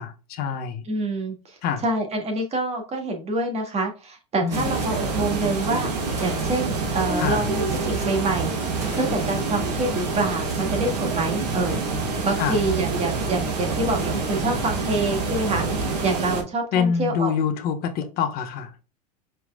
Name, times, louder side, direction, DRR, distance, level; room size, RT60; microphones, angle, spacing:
voice 1, 0.0-0.8 1.6-1.8 4.4-4.6 7.2-7.4 12.4-12.6 16.7-18.7, left 7 dB, 50° left, 1.0 m, -25 dB
voice 2, 0.9-1.6 1.8-5.9 6.2-8.6 8.9-11.8 12.2-17.3, right 2 dB, 30° right, 1.9 m, -26 dB
Gunshot gunfire, 4.5-4.9 5.7-5.8 6.2-6.8 7.6-8.1 8.4-8.5 8.8-9.5 10.3-10.7, right 2 dB, 15° right, 2.6 m, -42 dB
sound 1, 4.5-16.4, right 3 dB, 80° right, 1.7 m, -26 dB
5.1 x 4.5 x 2.3 m
hypercardioid pair, 95°, 21 cm